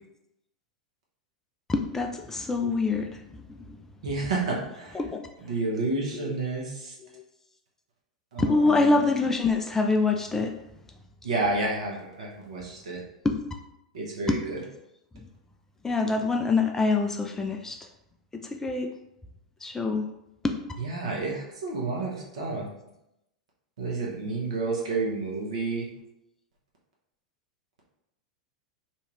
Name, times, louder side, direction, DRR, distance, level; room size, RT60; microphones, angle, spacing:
voice 1, 1.7-3.8 4.1-4.2 4.6-5.2 6.1-6.4 7.0-7.2 8.4-10.6 13.2-13.4 14.3-14.4 15.8-17.8 18.3-18.9 19.6-20.1 20.4-20.6, left 3 dB, 10° left, 3 dB, 0.3 m, -26 dB
voice 2, 4.0-4.9 5.5-6.6 8.3-9.0 11.2-13.0 13.9-14.6 20.8-22.7 23.8-25.9, right 3 dB, 65° right, -3 dB, 0.9 m, -30 dB
2.8 x 2.4 x 3.1 m, 0.85 s
figure-of-eight pair, 90°, 4 cm